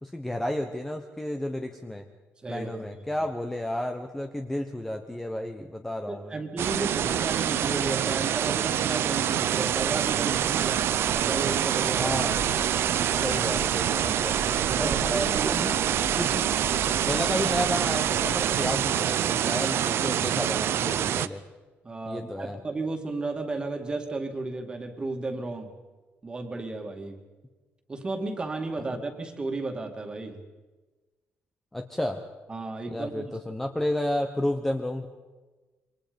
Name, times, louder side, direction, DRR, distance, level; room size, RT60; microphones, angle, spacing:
voice 1, 0.0-2.1 2.5-6.4 7.0-7.2 11.9-12.4 13.2-14.4 14.8-15.8 16.1-16.4 17.0-21.4 22.1-22.6 28.9-29.0 31.7-32.2 32.9-35.1, left 1 dB, 5° left, 4 dB, 1.1 m, -32 dB
voice 2, 2.4-2.9 3.2-3.3 6.1-12.4 13.3-13.4 14.6-15.6 19.6-19.7 21.8-25.7 26.2-27.2 27.9-30.4 32.5-33.4, right 3 dB, 20° right, 5 dB, 2.3 m, -33 dB
sound 1, 6.6-21.3, right 10 dB, 60° right, 0.8 m, -26 dB
sound 2, 10.3-18.7, left 3 dB, 55° left, 3.6 m, -42 dB
27.5 x 25.0 x 5.3 m, 1.2 s
cardioid pair, 175°, 5 cm